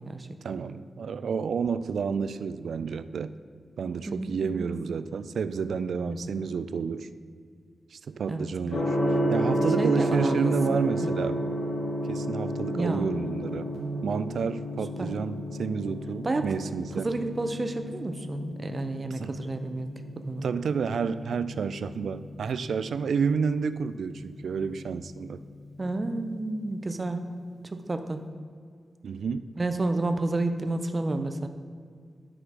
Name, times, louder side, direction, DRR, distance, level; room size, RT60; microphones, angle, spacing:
voice 1, 0.4-3.3 3.8-7.1 7.9-9.0 9.3-11.5 12.1-13.7 14.0-17.1 19.2-19.4 20.4-25.4 29.0-29.5, right 6 dB, 90° right, 13 dB, 0.3 m, -30 dB
voice 2, 4.1-4.7 6.0-6.2 8.3-8.5 9.8-11.1 12.8-13.1 15.0-15.2 16.2-16.5 17.0-20.5 25.8-27.3 27.6-28.2 29.6-31.5, right 2 dB, 25° right, 8 dB, 0.5 m, -30 dB
Gong, 8.7-26.6, equal, 85° left, 2.2 m, -32 dB
10.5 x 4.9 x 6.0 m, 2.1 s
wide cardioid pair, 175°, 0 cm